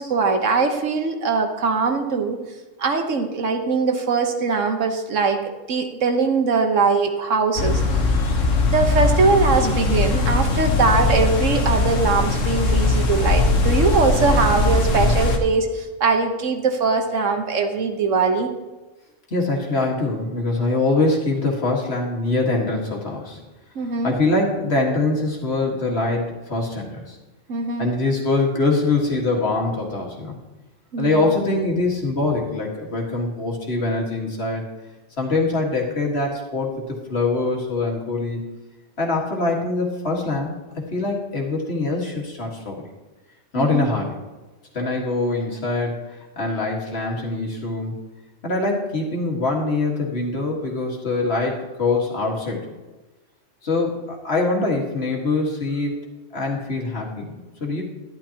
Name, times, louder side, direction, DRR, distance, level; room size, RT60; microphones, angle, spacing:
voice 1, 0.0-2.4 2.8-5.4 5.7-7.8 8.6-18.5 23.7-24.1 27.5-27.9 30.9-31.3 43.6-43.9, right 4 dB, 80° right, 5 dB, 1.5 m, -21 dB
sound 1, 7.6-15.4, left 3 dB, 90° left, 1.5 m, -20 dB
voice 2, 19.3-23.4 24.0-27.2 27.8-30.4 31.0-34.6 35.2-38.4 39.0-40.5 40.9-42.8 43.5-44.2 44.7-47.9 48.4-52.7 53.6-56.0 56.3-57.8, left 3 dB, 55° left, -1 dB, 2.0 m, -23 dB
11.5 x 11.5 x 2.9 m, 1.1 s
omnidirectional pair, 1.3 m